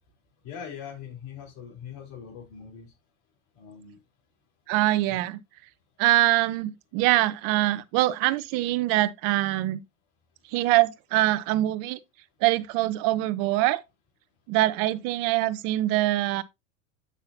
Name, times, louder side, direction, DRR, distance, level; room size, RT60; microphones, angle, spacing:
voice 1, 0.4-2.9 3.6-4.0 5.1-5.2, left 7 dB, 60° left, 3.7 m, -41 dB
voice 2, 4.7-5.4 6.0-9.8 10.5-12.0 12.4-13.8 14.5-16.4, right 16 dB, 55° right, 0.8 m, -24 dB
8.6 x 5.7 x 2.7 m
hypercardioid pair, 100°, 40 cm